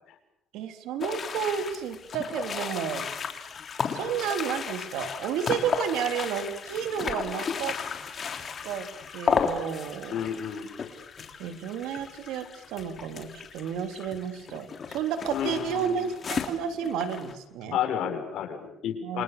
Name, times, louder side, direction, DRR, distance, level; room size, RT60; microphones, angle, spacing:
voice 1, 0.5-3.1 3.9-7.7 8.6-8.9 9.1-10.2 11.4-17.8 19.0-19.2, right 8 dB, 90° right, 7 dB, 3.7 m, -31 dB
sound 1, 1.0-17.3, left 6 dB, 35° left, 3.4 m, -34 dB
voice 2, 10.1-10.7 15.3-16.1 17.7-19.2, left 9 dB, 65° left, 5 dB, 6.4 m, -31 dB
29.0 x 27.5 x 7.0 m, 0.76 s
cardioid pair, 140°, 0 cm